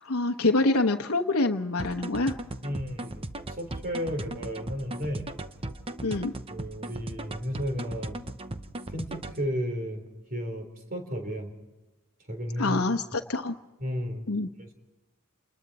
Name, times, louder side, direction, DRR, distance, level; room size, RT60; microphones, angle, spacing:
voice 1, 0.0-2.4 6.0-6.3 12.6-13.5 14.3-14.5, left 2 dB, 85° left, 4 dB, 1.1 m, -26 dB
sound 1, 1.8-9.5, right 1 dB, 25° right, 0.8 m, -38 dB
voice 2, 2.6-5.3 6.5-8.2 8.9-11.5 12.3-12.8 13.8-14.3 14.6-14.7, equal, 40° right, 4 dB, 3.8 m, -33 dB
30.0 x 20.5 x 4.2 m, 1.1 s
head